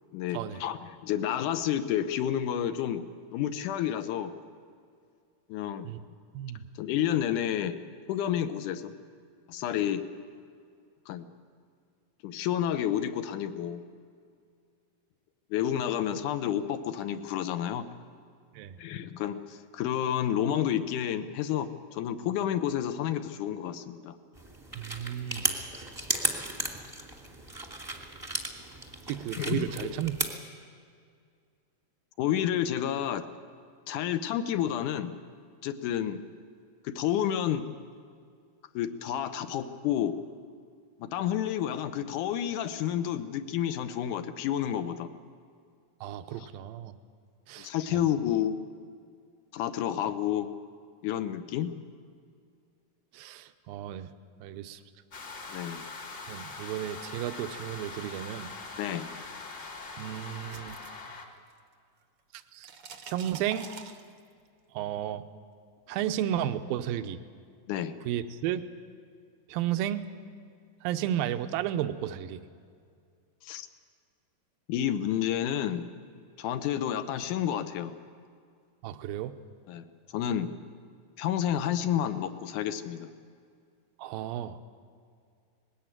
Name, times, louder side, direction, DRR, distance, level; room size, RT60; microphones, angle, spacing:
voice 1, 0.1-3.0 3.3-4.3 5.5-5.9 6.8-7.7 8.1-8.9 9.5-10.0 11.1-11.3 12.2-13.8 15.5-17.9 18.8-24.1 29.4-29.9 32.2-33.2 33.9-35.1 35.6-36.2 36.8-37.6 38.8-40.1 41.0-45.1 46.3-46.5 47.6-48.6 49.5-50.5 51.0-51.7 55.5-55.8 58.8-59.1 67.7-67.9 73.4-73.7 74.7-75.9 76.4-77.9 79.7-79.9 80.1-80.5 81.2-83.1, left 10 dB, 75° left, 11 dB, 2.0 m, -30 dB
voice 2, 6.3-6.6 18.5-18.8 24.8-25.4 29.1-30.2 46.0-46.9 47.5-48.0 53.1-54.1 54.4-54.8 56.3-58.5 60.0-60.8 62.5-62.7 63.1-63.7 64.7-65.2 65.9-67.2 68.1-68.6 69.5-70.1 70.8-72.4 78.8-79.4 84.0-84.6, right 11 dB, 85° right, 10 dB, 2.5 m, -33 dB
sound 1, 24.3-30.3, right 2 dB, 15° right, 0.9 m, -35 dB
sound 2, 55.1-61.2, left 3 dB, 40° left, 1.5 m, -42 dB
sound 3, 60.0-61.7 62.0-64.5, right 6 dB, 70° right, 1.3 m, -47 dB
20.0 x 16.5 x 9.0 m, 2.2 s
omnidirectional pair, 4.2 m